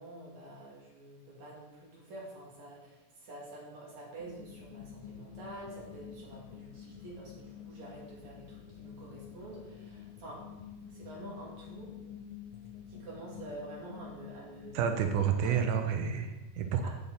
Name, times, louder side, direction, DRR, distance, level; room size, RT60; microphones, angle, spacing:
voice 1, 0.0-10.4 10.9-11.9 12.9-15.0 15.4-15.6 16.8-16.9, right 1 dB, 65° right, -4 dB, 3.4 m, -47 dB
sound 1, 4.2-15.9, left 8 dB, 85° left, 2.0 m, -48 dB
voice 2, 14.7-16.9, right 7 dB, 85° right, 6 dB, 2.2 m, -30 dB
8.6 x 8.1 x 3.9 m, 1.1 s
omnidirectional pair, 3.4 m